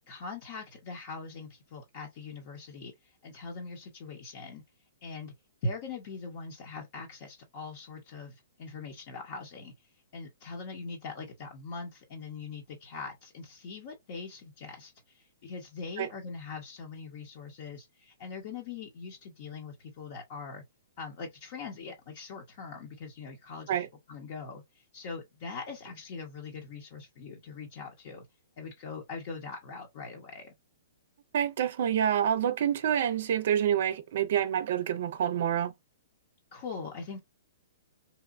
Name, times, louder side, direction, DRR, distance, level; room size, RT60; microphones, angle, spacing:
voice 1, 0.1-4.6 5.0-5.3 5.6-9.7 10.1-20.6 21.0-28.3 28.6-30.5 36.5-37.2, left 4 dB, 50° left, 0.7 m, -42 dB
voice 2, 31.3-35.7, right 9 dB, 60° right, 0.5 m, -27 dB
2.9 x 2.1 x 2.4 m
hypercardioid pair, 125°, 0 cm